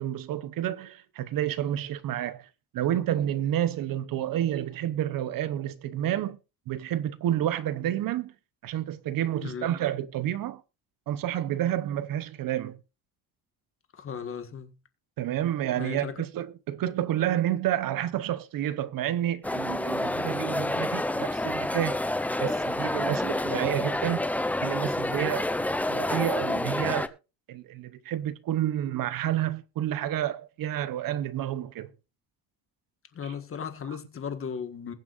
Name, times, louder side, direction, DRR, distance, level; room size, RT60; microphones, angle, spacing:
voice 1, 0.0-2.5 2.7-6.4 6.7-8.3 8.6-10.6 11.1-12.8 15.2-22.0 22.4-24.3 24.6-25.5 25.9-27.2 27.5-31.9, right 12 dB, 55° right, 0.9 m, -29 dB
voice 2, 9.4-9.7 13.9-14.8 15.8-16.2 33.1-34.9, left 7 dB, 30° left, 1.6 m, -36 dB
sound 1, 19.4-27.1, left 1 dB, 5° left, 0.5 m, -28 dB
21.0 x 7.4 x 2.5 m
cardioid pair, 155°, 40 cm